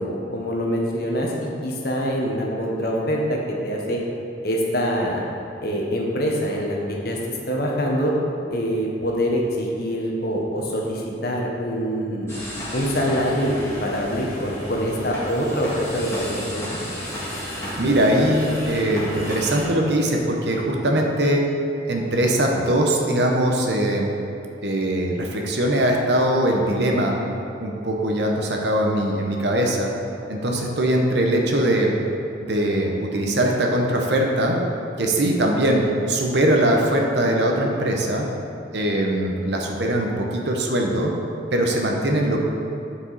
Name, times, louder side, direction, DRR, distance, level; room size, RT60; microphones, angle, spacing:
voice 1, 0.0-4.0 4.4-5.2 5.6-7.2 7.5-8.1 8.5-12.3 12.7-13.5 13.8-16.8, equal, 50° left, -1 dB, 1.0 m, -25 dB
sound 1, 12.3-19.6, equal, 15° left, 1.6 m, -33 dB
voice 2, 17.8-21.4 21.9-24.1 24.6-27.2 27.6-29.9 30.3-31.9 32.4-34.6 35.0-38.3 38.7-41.1 41.5-42.4, right 1 dB, 65° right, 1 dB, 0.9 m, -21 dB
8.8 x 4.8 x 4.1 m, 2.6 s
head